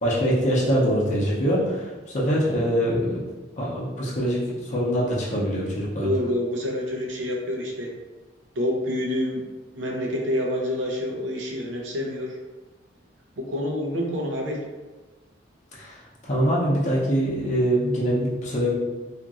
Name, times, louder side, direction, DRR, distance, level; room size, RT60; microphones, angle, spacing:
voice 1, 0.0-3.2 3.6-6.1 15.8-15.9 16.2-18.8, equal, 40° left, -5 dB, 0.6 m, -23 dB
voice 2, 6.0-7.9 8.5-9.4 9.7-12.4 13.4-14.6, left 1 dB, 80° right, 0 dB, 0.6 m, -27 dB
2.8 x 2.5 x 2.4 m, 1.2 s
head